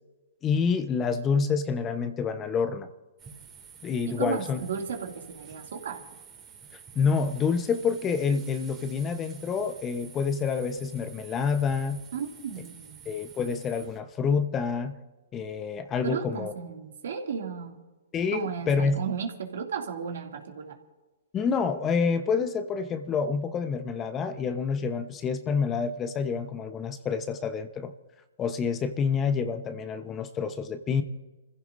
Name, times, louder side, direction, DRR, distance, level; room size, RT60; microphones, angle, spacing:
voice 1, 0.4-2.9 3.8-4.6 6.9-12.0 13.1-15.0 15.3-16.5 18.1-19.0 21.3-27.9 28.4-31.0, left 5 dB, 25° left, 9 dB, 1.0 m, -28 dB
sound 1, 3.2-14.0, right 6 dB, 20° right, 2.6 m, -50 dB
voice 2, 4.1-6.1 12.1-13.1 16.0-17.8 18.3-20.8, right 6 dB, 70° right, 2 dB, 2.6 m, -34 dB
29.5 x 15.5 x 2.7 m, 1.1 s
hypercardioid pair, 125°, 0 cm